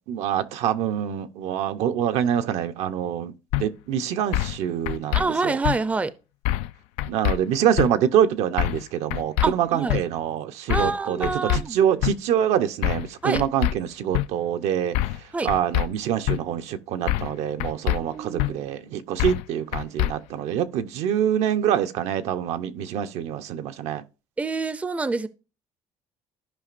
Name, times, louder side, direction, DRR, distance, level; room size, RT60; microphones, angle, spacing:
voice 1, 0.1-5.6 7.0-14.9 15.4-24.0, right 9 dB, 75° right, 0.7 m, -25 dB
sound 1, 3.5-3.6 4.3-4.6 4.9-5.2 5.6-5.8 6.4-6.7 7.0-7.4 7.8-7.9 8.6-8.8 9.1-9.5 9.9-10.0 10.7-10.9 11.2-11.6 12.0-12.1 12.8-13.1 13.3-13.7 14.1-14.3 14.9-15.2 15.5-15.9 16.3-16.4 17.1-17.3 17.6-18.0 18.4-18.5 19.2-19.4 19.7-20.1, left 15 dB, 85° left, 0.4 m, -24 dB
voice 2, 5.1-6.1 9.4-10.0 10.7-11.8 13.2-13.4 15.3-15.5 17.9-18.6 24.4-25.3, right 3 dB, 10° right, 0.5 m, -27 dB
14.5 x 5.1 x 2.5 m
cardioid pair, 115°, 11 cm